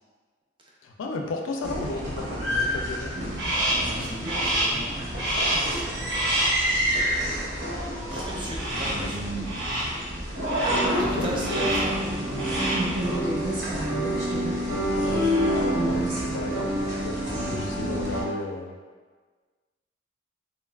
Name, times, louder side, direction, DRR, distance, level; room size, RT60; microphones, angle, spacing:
voice 1, 0.8-3.1 8.9-9.1 11.1-11.6 14.9-18.8, left 2 dB, 80° left, 2 dB, 0.4 m, -34 dB
sound 1, 1.6-18.2, equal, 65° right, 0.6 m, -28 dB
Crow, 3.4-3.9 4.3-4.8 5.2-5.8 6.1-6.7 8.6-9.1 9.5-10.0 10.4-11.0 11.4-12.0 12.3-12.9, right 1 dB, 90° right, 0.8 m, -27 dB
voice 2, 3.8-6.0 8.0-9.3 11.0-12.0, right 1 dB, 25° right, -3 dB, 0.4 m, -36 dB
3.1 x 2.2 x 2.3 m, 1.5 s
head